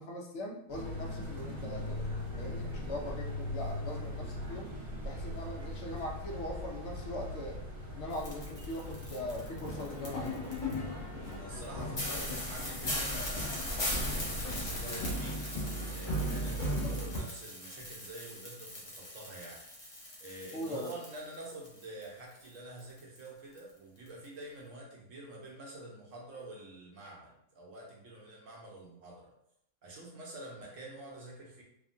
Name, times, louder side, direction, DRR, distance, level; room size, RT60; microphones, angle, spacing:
voice 1, 0.0-4.7 5.0-7.6 7.9-10.6 16.8-17.0 20.5-21.0, left 1 dB, 65° left, 0 dB, 0.9 m, -41 dB
sound 1, 0.7-15.2, left 1 dB, 85° right, 2.0 m, -41 dB
sound 2, 8.1-10.7 11.3-11.4 11.6-11.7 12.0-22.1 22.3-23.3 23.6-23.7 24.1-24.3, left 1 dB, 40° left, 0.3 m, -40 dB
sound 3, 9.2-17.2, equal, 15° left, 1.1 m, -38 dB
voice 2, 11.1-15.4 15.9-19.6 20.2-29.3 29.8-31.6, right 1 dB, 70° right, -2 dB, 1.2 m, -47 dB
3.5 x 2.2 x 2.5 m, 0.76 s
omnidirectional pair, 1.4 m